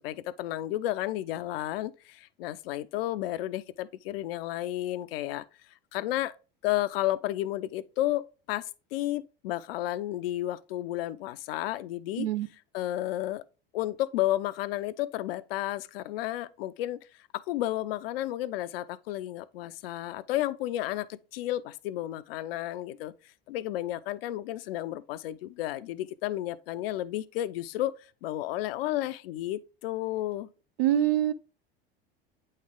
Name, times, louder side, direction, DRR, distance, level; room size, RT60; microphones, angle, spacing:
voice 1, 0.0-5.4 5.9-6.3 6.6-12.3 12.7-13.4 13.7-17.0 17.3-23.1 23.5-27.9 28.2-30.5, left 14 dB, 75° left, 0.5 m, -32 dB
voice 2, 30.8-31.3, right 12 dB, 80° right, 0.6 m, -24 dB
8.2 x 3.3 x 3.6 m
hypercardioid pair, 85°, 29 cm